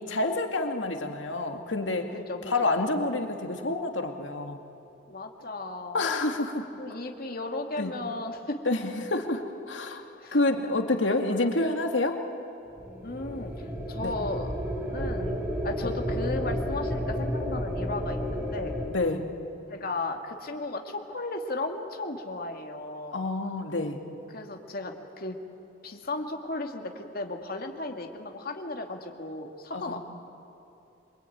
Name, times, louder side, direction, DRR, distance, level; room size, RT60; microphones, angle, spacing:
voice 1, 0.0-2.1 2.5-4.6 5.9-6.7 7.8-7.9 8.7-8.8 9.1-9.4 9.7-10.0 10.3-12.2 14.0-14.1 18.9-19.3 23.1-24.0 29.7-30.0, left 2 dB, 80° left, 4 dB, 2.2 m, -28 dB
voice 2, 2.1-2.7 5.1-6.0 6.8-8.6 10.2-10.4 11.1-11.8 13.0-14.5 14.9-18.7 19.7-23.2 24.3-25.4 25.8-30.0, left 2 dB, 50° left, 3 dB, 2.3 m, -35 dB
sound 1, 12.8-18.9, equal, 10° right, 3.6 m, -31 dB
27.0 x 23.5 x 9.4 m, 2.8 s
head